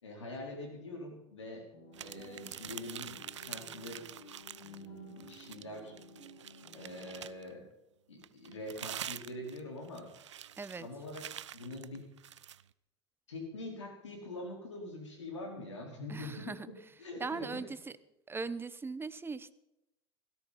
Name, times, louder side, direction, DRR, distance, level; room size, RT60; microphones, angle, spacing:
voice 1, 0.0-1.6 2.0-3.2 3.4-4.0 4.6-5.9 6.7-7.6 8.1-10.1 10.8-11.2 11.5-12.0 13.3-16.7 17.0-17.6, left 2 dB, 90° left, 1 dB, 4.4 m, -44 dB
sound 1, 1.7-7.6, left 1 dB, 70° left, 7.0 m, -55 dB
sound 2, 1.9-4.9 5.2-7.5 8.2-12.6, right 10 dB, 90° right, 0.4 m, -46 dB
voice 2, 10.6-10.9 16.1-16.7 17.2-17.8 18.3-19.5, right 4 dB, 15° right, 16 dB, 0.9 m, -39 dB
16.5 x 13.5 x 4.2 m, 0.89 s
hypercardioid pair, 85°, 15 cm